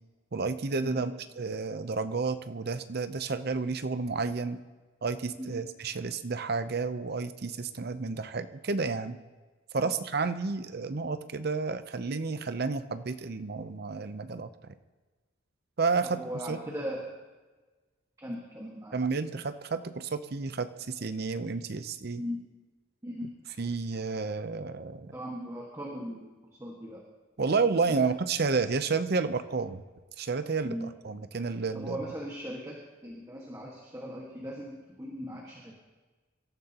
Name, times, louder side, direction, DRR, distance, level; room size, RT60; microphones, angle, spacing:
voice 1, 0.3-1.1 1.4-4.6 5.0-9.2 9.7-14.7 15.8-16.2 16.5-16.6 18.9-22.2 23.6-25.1 27.4-29.8 30.2-32.0, right 4 dB, 55° right, 11 dB, 0.7 m, -31 dB
voice 2, 16.0-17.0 18.2-19.0 22.2-22.4 23.0-23.3 25.1-26.3 26.6-27.0 27.7-28.1 30.6-30.9 31.7-35.7, equal, 15° right, -2 dB, 1.6 m, -39 dB
24.5 x 13.0 x 2.9 m, 1.3 s
head